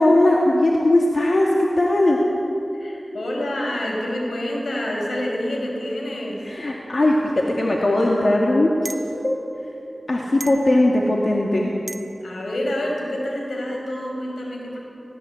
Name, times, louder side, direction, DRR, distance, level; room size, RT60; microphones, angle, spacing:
voice 1, 0.0-2.2 6.4-9.4 10.1-11.7, left 1 dB, 60° left, -2 dB, 2.2 m, -19 dB
voice 2, 2.7-6.4 12.2-14.8, left 1 dB, 90° left, -1 dB, 5.1 m, -27 dB
sound 1, 8.8-9.1 10.4-10.7 11.9-12.1, right 2 dB, 50° right, 1.0 m, -34 dB
18.0 x 16.5 x 8.8 m, 2.8 s
cardioid pair, 45°, 0 cm